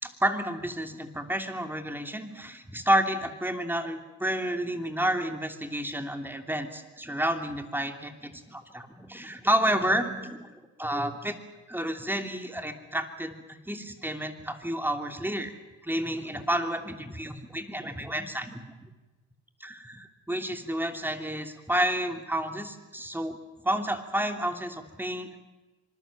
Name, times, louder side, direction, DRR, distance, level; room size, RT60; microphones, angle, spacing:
voice 1, 0.0-10.5 10.8-11.4 11.7-15.6 15.8-18.9 19.6-23.4 23.6-25.4, right 1 dB, 5° right, 6 dB, 3.0 m, -30 dB
26.0 x 20.5 x 7.4 m, 1.2 s
cardioid pair, 90°, 30 cm